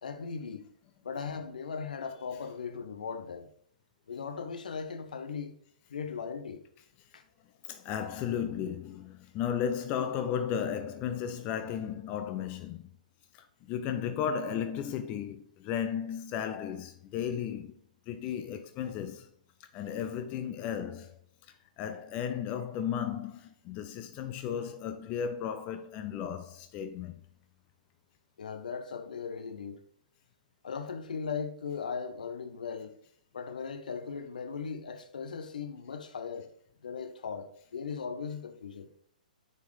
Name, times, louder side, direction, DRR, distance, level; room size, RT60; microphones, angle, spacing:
voice 1, 0.0-0.7 1.0-3.5 4.1-5.5 5.9-6.6 7.1-7.2 28.4-29.8 30.6-33.0 33.3-36.5 36.8-38.9, left 6 dB, 70° left, 0.9 m, -38 dB
voice 2, 7.6-12.8 13.3-17.7 18.1-19.3 19.6-21.2 21.8-27.2, left 8 dB, 30° left, 0.4 m, -34 dB
9.5 x 4.4 x 3.2 m
figure-of-eight pair, 120°, 5 cm